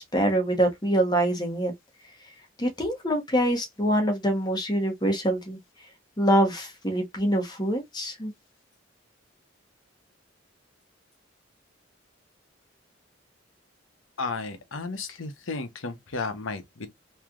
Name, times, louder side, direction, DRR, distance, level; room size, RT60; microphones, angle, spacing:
voice 1, 0.0-1.7 2.6-5.6 6.2-8.3, right 1 dB, 20° left, 1.0 m, -25 dB
voice 2, 14.2-16.9, left 3 dB, 80° left, 0.8 m, -33 dB
3.2 x 2.8 x 2.4 m
head